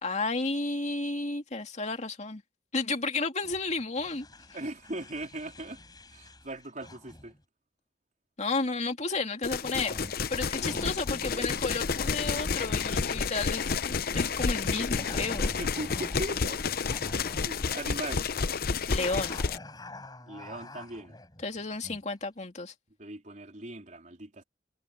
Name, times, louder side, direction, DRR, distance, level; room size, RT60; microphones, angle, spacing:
voice 1, 0.0-2.4 2.7-4.3 8.4-9.9 10.3-15.5 18.9-19.4 21.4-22.7, left 3 dB, 40° left, 2.5 m, -32 dB
sound 1, 3.4-7.4 9.6-17.5 18.9-22.1, left 2 dB, 25° left, 4.1 m, -47 dB
voice 2, 4.5-5.8 6.1-7.4 10.6-11.5 15.6-16.6 17.4-18.3 20.2-21.2 23.0-24.4, right 1 dB, 45° right, 3.9 m, -39 dB
sound 2, 9.4-19.6, left 5 dB, 60° left, 0.7 m, -30 dB
head